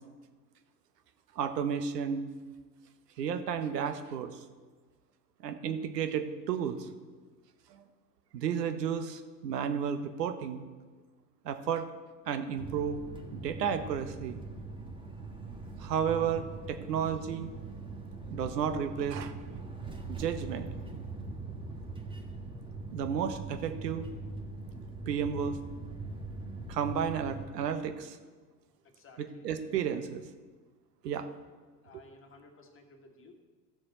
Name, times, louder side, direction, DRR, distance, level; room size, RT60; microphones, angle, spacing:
voice 1, 1.3-2.3 3.2-4.3 5.4-6.9 7.7-7.8 8.3-10.6 11.4-11.9 12.3-13.0 13.3-14.4 15.8-17.5 18.3-19.3 20.1-20.7 22.9-24.0 25.1-25.6 26.7-28.2 29.2-30.2 31.0-31.3 31.9-32.0, right 7 dB, 70° right, 9 dB, 1.0 m, -32 dB
sound 1, 12.6-27.5, right 3 dB, 10° right, 1.3 m, -42 dB
voice 2, 28.8-29.5 31.8-33.3, left 3 dB, 25° left, 3 dB, 1.7 m, -56 dB
15.0 x 6.5 x 4.2 m, 1.4 s
figure-of-eight pair, 80°, 50 cm